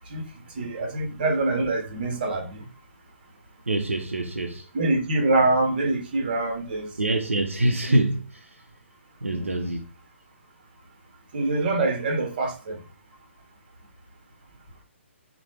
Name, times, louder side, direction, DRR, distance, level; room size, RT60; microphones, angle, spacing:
voice 1, 0.6-2.6 4.7-6.9 7.9-8.0 9.3-9.4 11.3-12.8, right 2 dB, 45° right, 0.9 m, -25 dB
voice 2, 3.7-4.7 7.0-8.6 9.2-9.8, right 1 dB, 80° right, 0.5 m, -25 dB
3.1 x 2.1 x 2.9 m
figure-of-eight pair, 135°, 7 cm